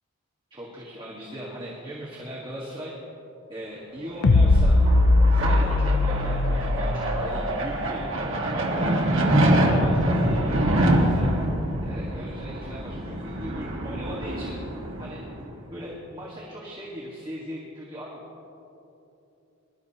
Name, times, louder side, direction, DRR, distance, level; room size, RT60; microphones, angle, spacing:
voice 1, 0.5-2.9 3.5-4.8 5.3-8.0 8.3-9.0 9.5-11.3 11.8-14.5 15.0-15.2 15.7-18.2, equal, 25° right, -6 dB, 1.6 m, -38 dB
sound 1, 4.2-7.7, left 2 dB, 70° left, 0.5 m, -20 dB
sound 2, 4.2-15.5, right 1 dB, 65° right, 1.7 m, -25 dB
21.5 x 12.0 x 2.9 m, 2.8 s
head